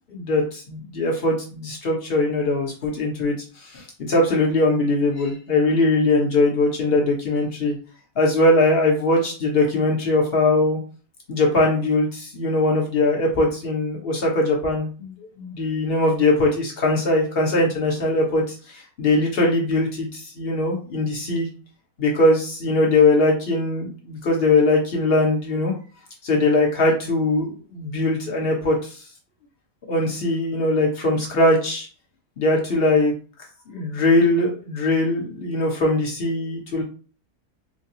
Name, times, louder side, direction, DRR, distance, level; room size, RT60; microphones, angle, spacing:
voice 1, 0.1-3.3 3.6-3.8 4.1-7.7 8.2-10.8 11.3-21.5 22.0-25.7 26.2-29.0 29.9-31.9 32.4-33.1 33.7-36.8, left 2 dB, 40° left, -1 dB, 1.2 m, -21 dB
4.8 x 2.1 x 2.7 m, 0.38 s
omnidirectional pair, 1.7 m